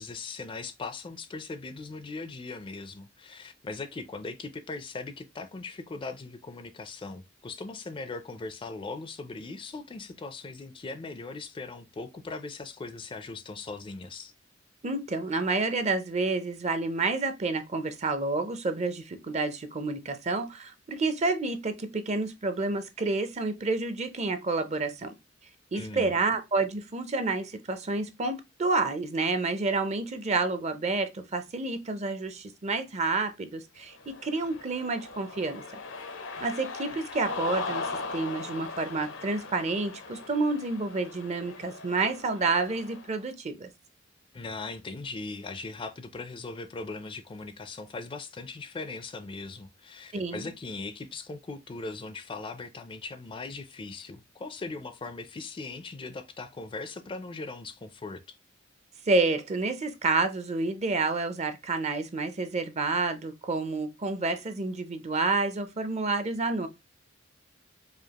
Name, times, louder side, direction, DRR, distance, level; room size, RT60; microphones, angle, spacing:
voice 1, 0.0-14.3 25.7-26.2 44.3-58.4, left 3 dB, 25° left, 0.4 m, -39 dB
voice 2, 14.8-25.1 25.7-35.6 36.4-43.7 50.1-50.4 59.1-66.7, right 3 dB, 35° right, 0.5 m, -29 dB
Cheering, 33.9-43.2, left 3 dB, 80° left, 0.7 m, -39 dB
4.9 x 2.4 x 2.9 m
head